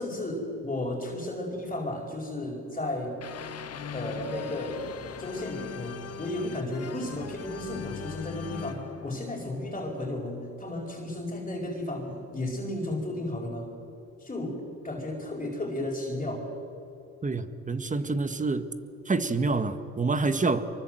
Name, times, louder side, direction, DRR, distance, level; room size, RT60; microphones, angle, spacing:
voice 1, 0.0-3.1 3.9-4.8 5.2-13.7 14.2-14.5 14.8-16.4, left 1 dB, 20° left, -2 dB, 4.9 m, -33 dB
sound 1, 3.2-10.2, left 7 dB, 55° left, 1.6 m, -40 dB
voice 2, 17.2-18.7 19.1-20.6, right 3 dB, 25° right, 10 dB, 1.7 m, -27 dB
24.5 x 23.5 x 7.9 m, 2.9 s
cardioid pair, 90°, 30 cm